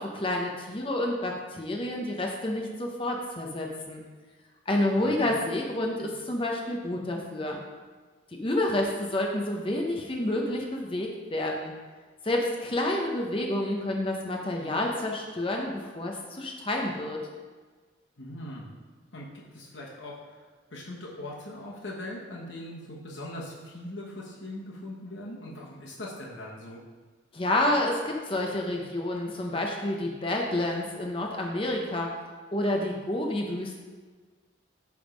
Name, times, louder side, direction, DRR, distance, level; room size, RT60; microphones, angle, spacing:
voice 1, 0.0-4.0 4.7-7.6 8.4-11.7 12.2-17.2 27.3-32.1 32.5-33.8, left 1 dB, 25° left, 1 dB, 0.7 m, -29 dB
voice 2, 4.9-5.3 6.0-6.1 18.2-18.7 19.1-20.4 20.7-26.8, left 1 dB, 65° left, -4 dB, 1.2 m, -41 dB
9.2 x 3.6 x 5.0 m, 1.4 s
head